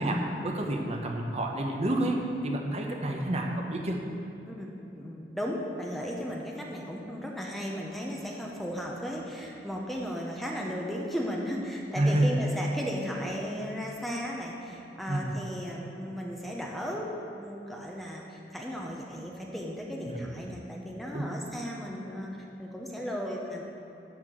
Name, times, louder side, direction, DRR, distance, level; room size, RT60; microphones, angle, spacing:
voice 1, 0.0-4.0 12.0-12.4 15.1-15.3 20.1-20.2 21.1-21.3, right 1 dB, 35° right, 1 dB, 0.9 m, -29 dB
voice 2, 4.4-23.6, equal, ahead, -2 dB, 0.9 m, -36 dB
12.0 x 4.4 x 7.7 m, 2.8 s
head